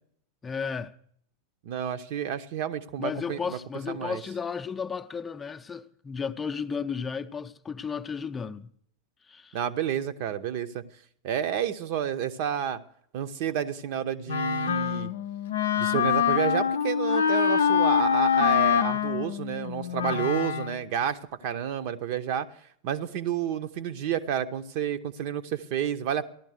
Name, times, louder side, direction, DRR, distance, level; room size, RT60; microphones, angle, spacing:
voice 1, 0.4-0.9 3.0-8.7 9.3-9.6, left 6 dB, 15° left, 0.6 m, -33 dB
voice 2, 1.6-3.6 3.9-4.2 9.5-10.8 11.2-12.8 13.1-15.1 15.8-22.5 22.8-26.3, right 9 dB, 45° right, 0.8 m, -30 dB
Wind instrument woodwind instrument, 14.3-20.8, left 8 dB, 65° left, 0.6 m, -25 dB
15.0 x 12.0 x 6.5 m
figure-of-eight pair, 90°, 0 cm